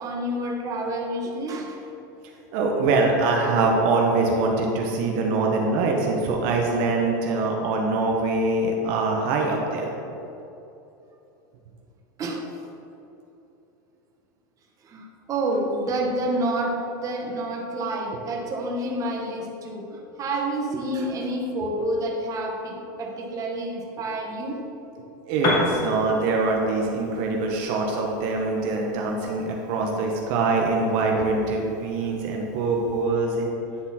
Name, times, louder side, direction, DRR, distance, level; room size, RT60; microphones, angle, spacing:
voice 1, 0.0-1.8 12.2-12.4 14.8-24.5, right 1 dB, 30° right, 0 dB, 1.1 m, -28 dB
voice 2, 2.5-9.9 20.7-20.8 25.3-33.5, right 3 dB, 60° right, 0 dB, 0.9 m, -23 dB
Piano, 25.3-33.1, left 3 dB, 35° left, 1.1 m, -34 dB
9.6 x 3.9 x 4.2 m, 2.8 s
supercardioid pair, 130°, 11 cm